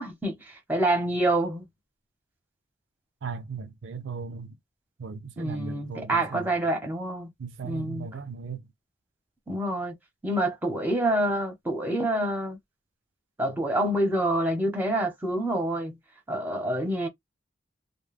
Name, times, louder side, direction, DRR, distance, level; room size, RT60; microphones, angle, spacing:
voice 1, 0.0-1.7 5.4-7.3 7.6-8.1 9.5-9.9 10.2-12.6 13.4-15.9 16.3-17.1, right 1 dB, 10° right, 0.8 m, -27 dB
voice 2, 3.2-4.6 5.0-6.5 7.4-8.6, right 5 dB, 75° right, 0.4 m, -37 dB
2.3 x 2.1 x 3.1 m
head